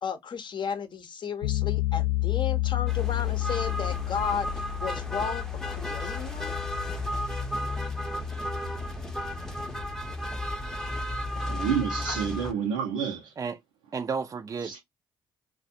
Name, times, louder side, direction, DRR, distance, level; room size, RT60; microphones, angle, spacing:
voice 1, 0.0-6.6 12.1-12.2, left 6 dB, 45° left, 0.7 m, -34 dB
sound 1, 1.4-12.3, left 19 dB, 85° left, 0.7 m, -32 dB
sound 2, 2.9-12.5, equal, 5° left, 0.6 m, -34 dB
voice 2, 11.4-13.3 14.6-14.8, right 7 dB, 85° right, 0.5 m, -29 dB
voice 3, 13.9-14.8, right 5 dB, 30° right, 0.3 m, -32 dB
2.4 x 2.1 x 2.6 m
hypercardioid pair, 55°, 11 cm